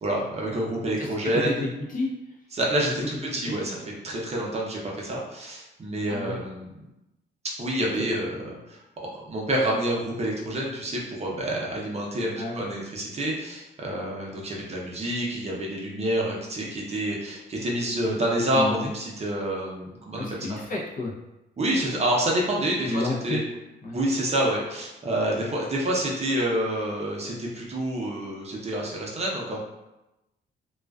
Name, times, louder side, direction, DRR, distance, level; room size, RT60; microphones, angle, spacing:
voice 1, 0.0-1.6 2.5-3.8 4.0-6.7 7.6-8.8 9.1-20.6 21.6-23.4 23.9-29.6, right 1 dB, 30° right, -3 dB, 0.6 m, -28 dB
voice 2, 1.3-2.1 3.5-3.8 6.1-6.4 8.0-8.1 12.4-12.6 18.5-18.9 20.2-21.1 22.9-23.4 23.8-24.0 25.4-25.5, left 2 dB, 45° left, -2 dB, 0.6 m, -30 dB
2.4 x 2.2 x 2.2 m, 0.96 s
cardioid pair, 90°, 20 cm